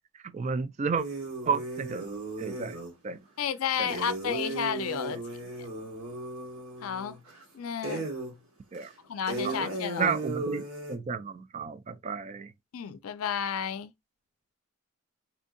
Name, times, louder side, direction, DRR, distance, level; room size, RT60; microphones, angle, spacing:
voice 1, 0.2-1.1 1.5-2.1 2.4-2.8 3.0-3.2 3.8-4.0 5.1-5.2 8.7-8.9 9.4-9.6 10.0-12.5, right 5 dB, 35° right, 0.3 m, -32 dB
sound 1, 1.0-2.9 3.9-7.4 7.8-8.4 8.7-8.8 9.3-11.0, right 2 dB, 80° right, 1.7 m, -36 dB
voice 2, 3.4-5.2 6.8-7.2 7.5-8.1 9.1-10.2 12.7-13.9, left 8 dB, 85° left, 0.4 m, -32 dB
4.3 x 2.6 x 2.6 m
head